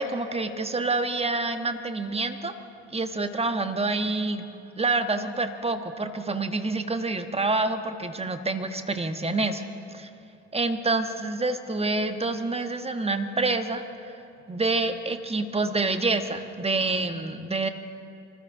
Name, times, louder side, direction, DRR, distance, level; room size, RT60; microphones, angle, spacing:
voice 1, 0.0-2.5 2.9-4.5 4.8-9.6 9.9-10.1 10.5-13.8 14.5-17.7, right 3 dB, 15° right, 8 dB, 1.3 m, -27 dB
25.0 x 14.5 x 3.9 m, 2.8 s
hypercardioid pair, 55°, 35 cm